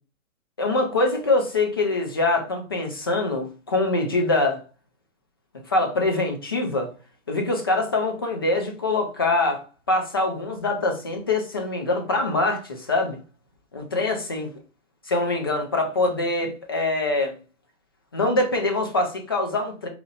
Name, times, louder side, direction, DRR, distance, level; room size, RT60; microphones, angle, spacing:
voice 1, 0.6-4.6 5.7-6.9 7.3-13.2 13.7-14.5 15.1-17.4 18.1-19.9, left 2 dB, 20° left, 0.3 m, -24 dB
4.2 x 2.4 x 4.0 m
hypercardioid pair, 135°, 41 cm